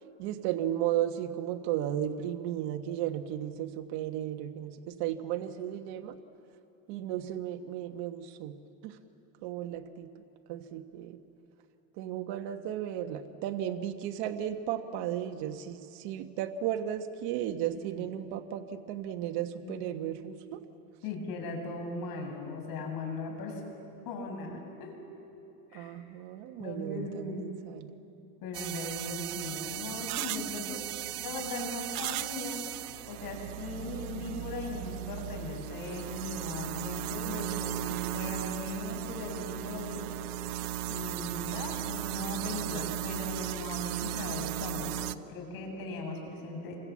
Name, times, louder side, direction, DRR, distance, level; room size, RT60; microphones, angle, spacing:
voice 1, 0.2-6.2 6.9-8.6 8.8-9.0 9.4-10.1 10.5-11.2 12.0-20.6 25.7-27.9, right 11 dB, 65° right, 7 dB, 1.4 m, -34 dB
voice 2, 17.7-18.1 19.6-19.8 21.0-23.6 24.0-24.9 25.7-26.0 26.6-27.4 28.4-30.8 31.2-32.6 33.1-40.1 40.9-46.8, left 3 dB, 50° left, 3 dB, 6.9 m, -38 dB
sound 1, 28.5-45.1, right 14 dB, 85° right, 1.0 m, -36 dB
29.5 x 25.0 x 7.4 m, 2.9 s
supercardioid pair, 120°, 44 cm